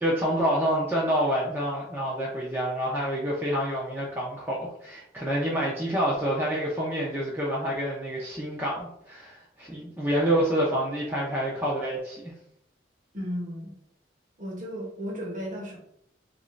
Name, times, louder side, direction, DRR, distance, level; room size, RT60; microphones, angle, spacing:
voice 1, 0.0-12.3, equal, 10° right, -6 dB, 0.5 m, -27 dB
voice 2, 13.1-13.7 14.4-15.8, equal, 45° right, -3 dB, 1.0 m, -34 dB
3.0 x 2.5 x 3.1 m, 0.74 s
head